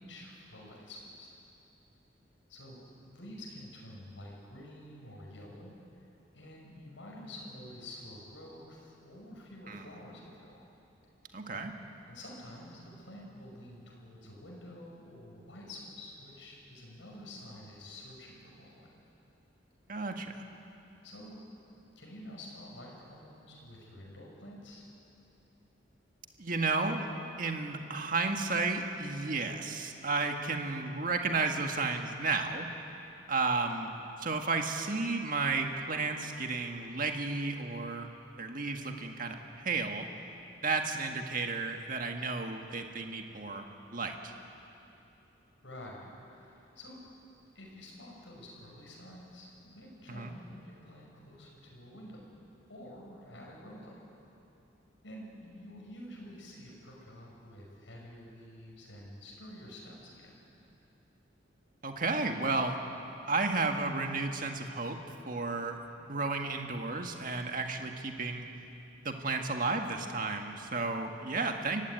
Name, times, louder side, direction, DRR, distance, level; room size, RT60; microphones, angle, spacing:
voice 1, 0.0-1.3 2.5-2.8 3.1-6.1 6.3-10.7 12.1-18.9 21.0-21.5 22.0-24.8 45.6-47.0 47.5-52.4 52.7-54.0 55.0-60.5, left 1 dB, 75° left, -2 dB, 5.7 m, -49 dB
voice 2, 11.3-11.7 19.9-20.3 26.4-27.0 27.4-32.7 33.3-33.9 34.2-38.1 38.4-40.1 40.6-43.7 43.9-44.1 50.1-50.3 61.8-62.7 63.3-65.0 65.3-68.5 69.0-71.8, right 3 dB, 45° right, 4 dB, 1.7 m, -32 dB
24.5 x 16.0 x 9.4 m, 2.9 s
head